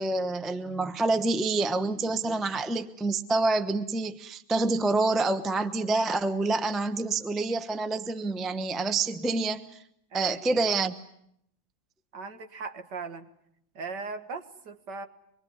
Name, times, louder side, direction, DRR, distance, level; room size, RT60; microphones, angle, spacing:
voice 1, 0.0-9.6 10.1-10.9, right 3 dB, ahead, 10 dB, 0.5 m, -27 dB
voice 2, 10.1-10.6 12.1-13.3 13.7-15.1, right 4 dB, 60° right, 7 dB, 2.3 m, -38 dB
25.5 x 22.5 x 9.8 m, 0.74 s
omnidirectional pair, 2.2 m